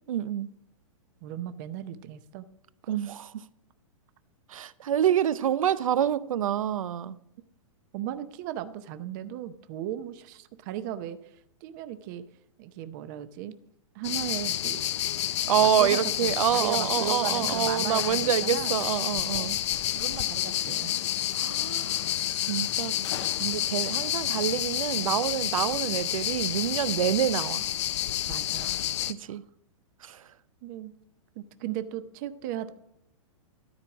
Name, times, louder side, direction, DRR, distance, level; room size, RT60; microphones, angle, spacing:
voice 1, 0.1-0.5 2.9-3.4 4.5-7.2 15.5-19.6 21.3-22.1 22.3-27.6 29.0-29.4 30.0-30.3, right 10 dB, 90° right, 0.6 m, -27 dB
voice 2, 1.2-2.4 7.9-12.2 12.6-13.5 13.9-14.8 15.6-18.8 19.3-19.6 19.9-21.0 28.3-28.7 29.3-29.4 30.6-30.9 31.4-32.7, right 11 dB, 35° right, 0.6 m, -36 dB
sound 1, 14.0-29.1, left 12 dB, 60° left, 0.6 m, -29 dB
13.0 x 4.6 x 7.1 m
hypercardioid pair, 155°, 17 cm